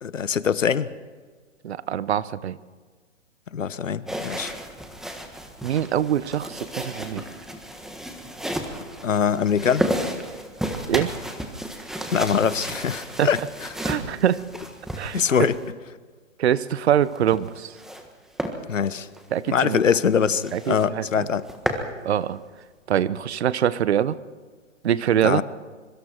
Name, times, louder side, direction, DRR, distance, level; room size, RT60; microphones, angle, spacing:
voice 1, 0.0-0.9 3.5-4.5 9.0-9.8 12.1-13.4 15.1-15.6 18.7-19.1 19.5-21.5 25.2-25.4, left 7 dB, 80° left, 16 dB, 1.1 m, -23 dB
voice 2, 1.6-2.6 5.6-7.2 10.9-11.1 13.2-13.5 13.8-14.4 15.0-15.5 16.4-17.7 19.3-19.8 20.5-21.3 22.0-22.4 22.9-24.2 24.8-25.4, right 10 dB, 60° right, 17 dB, 1.0 m, -24 dB
sound 1, 4.1-15.7 17.0-18.1 18.4-18.6 19.0-19.2 19.6-19.7 20.0-20.1 20.4-20.9 21.2-21.9, equal, ahead, 1.5 m, -32 dB
25.0 x 23.5 x 4.6 m, 1.5 s
hypercardioid pair, 130°, 37 cm